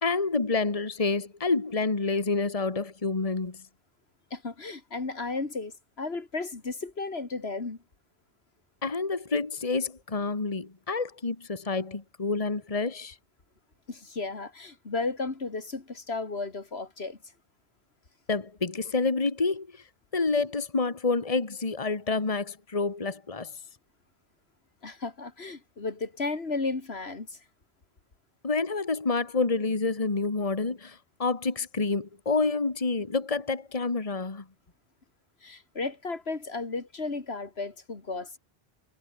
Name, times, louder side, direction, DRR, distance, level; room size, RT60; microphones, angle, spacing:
voice 1, 0.0-3.6 8.8-13.2 18.3-19.7 20.1-23.5 28.4-34.4, left 3 dB, 35° left, 1.7 m, -28 dB
voice 2, 4.3-7.8 13.9-17.2 24.8-27.4 35.4-38.4, left 3 dB, 85° left, 2.8 m, -34 dB
omnidirectional pair, 1.0 m